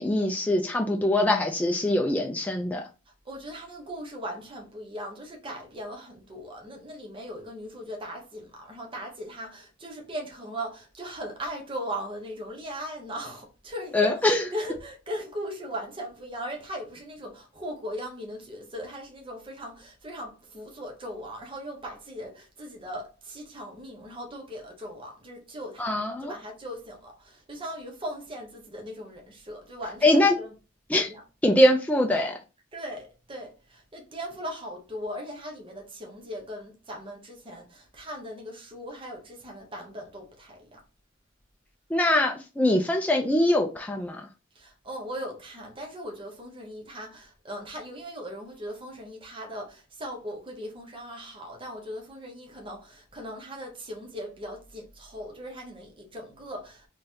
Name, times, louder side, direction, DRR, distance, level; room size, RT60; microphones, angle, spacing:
voice 1, 0.0-2.9 13.9-14.4 25.8-26.3 30.0-30.3 30.9-31.1 31.4-32.4 41.9-44.2, left 1 dB, 10° left, 0.4 m, -23 dB
voice 2, 3.2-30.5 30.9-31.2 32.7-40.8 44.5-56.9, equal, 25° right, 0.9 m, -39 dB
3.8 x 3.2 x 2.8 m
head